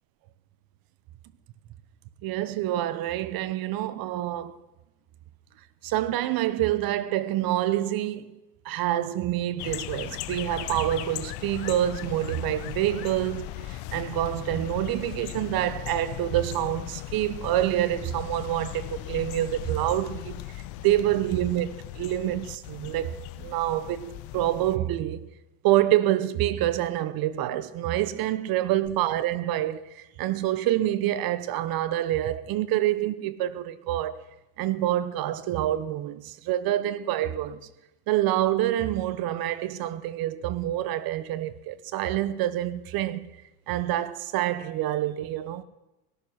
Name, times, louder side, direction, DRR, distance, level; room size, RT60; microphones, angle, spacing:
voice 1, 2.2-4.6 5.8-8.4 8.6-25.3 25.6-34.2 34.6-37.6 38.1-43.3 43.7-45.6, right 13 dB, 50° right, 1.1 m, -27 dB
sound 1, 9.6-24.8, left 16 dB, 55° left, 0.9 m, -38 dB
17.5 x 12.0 x 6.0 m
supercardioid pair, 105°, 45 cm